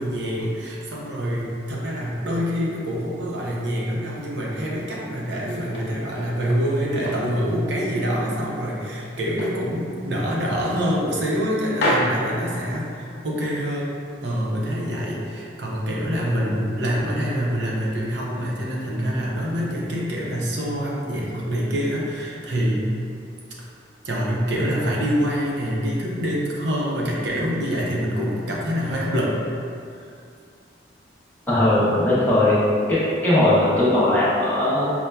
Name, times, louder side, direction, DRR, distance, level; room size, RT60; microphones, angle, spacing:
voice 1, 0.0-13.9 14.2-22.9 24.0-29.4, equal, 70° right, -4 dB, 0.6 m, -25 dB
sound 1, 5.2-6.7 7.0-8.4 8.8-9.6 10.0-10.2 10.6-11.4 11.7-13.2, left 1 dB, 60° left, 0.5 m, -29 dB
voice 2, 31.5-32.6 32.9-34.9, left 1 dB, 10° left, -10 dB, 0.7 m, -19 dB
5.3 x 2.1 x 2.2 m, 2.4 s
head